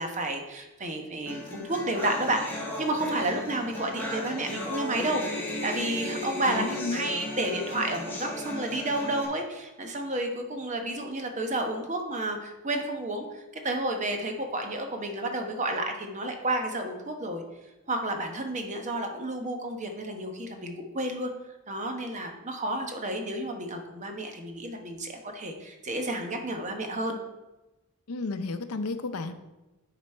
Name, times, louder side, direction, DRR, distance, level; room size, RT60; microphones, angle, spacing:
voice 1, 0.0-5.2 5.6-17.4 17.9-21.3 21.7-27.2, right 1 dB, 35° right, 4 dB, 1.0 m, -31 dB
sound 1, 1.3-9.2, left 1 dB, 10° left, 1.4 m, -35 dB
voice 2, 6.4-7.0 28.1-29.3, left 3 dB, 80° left, 10 dB, 0.6 m, -32 dB
10.5 x 4.1 x 4.4 m, 1.0 s
head